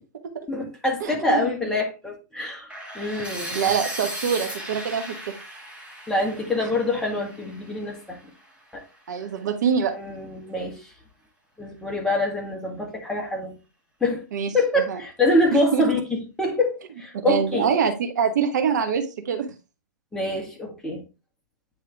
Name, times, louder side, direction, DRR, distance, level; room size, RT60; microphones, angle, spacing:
voice 1, 0.5-2.7 3.0-3.6 6.1-8.3 8.7-8.8 9.9-10.8 11.6-13.6 14.0-14.2 14.5-17.7 20.1-21.0, left 2 dB, 5° left, 1.8 m, -25 dB
voice 2, 1.0-1.5 3.5-5.3 6.6-6.7 9.1-9.9 14.3-15.0 15.5-15.8 17.3-19.5, right 7 dB, 65° right, 1.3 m, -25 dB
sound 1, 2.7-8.6, right 1 dB, 10° right, 2.0 m, -37 dB
9.4 x 3.5 x 3.4 m
hypercardioid pair, 120°, 10 cm